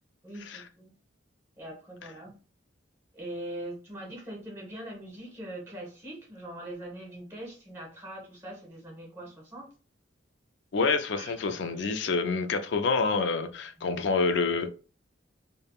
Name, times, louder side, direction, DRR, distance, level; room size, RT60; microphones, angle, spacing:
voice 1, 0.2-0.9 1.6-2.3 3.1-9.7 11.1-11.8 13.8-13.9, right 1 dB, 15° right, 1.0 m, -42 dB
voice 2, 10.7-14.7, left 4 dB, 65° left, 0.4 m, -27 dB
3.4 x 2.1 x 2.3 m
head